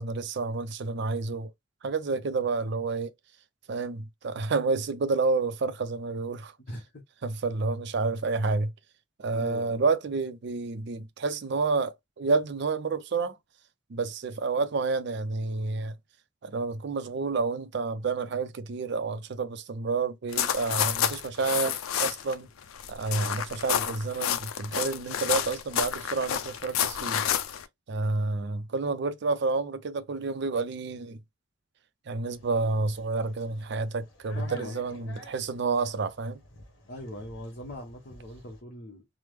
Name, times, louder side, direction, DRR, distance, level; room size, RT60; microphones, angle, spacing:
voice 1, 0.0-1.5 1.8-3.1 3.7-6.5 7.2-8.7 9.2-13.4 13.9-15.9 16.4-22.5 22.9-27.3 27.9-31.2 32.1-36.4, right 3 dB, 55° right, 0.4 m, -29 dB
voice 2, 6.7-7.0 9.3-9.8 34.4-35.3 36.9-39.1, left 1 dB, 50° left, 0.8 m, -41 dB
sound 1, 20.3-22.3 22.6-27.6, left 9 dB, 85° left, 0.4 m, -29 dB
sound 2, 32.3-38.6, left 1 dB, 65° left, 0.9 m, -52 dB
3.4 x 2.0 x 3.0 m
head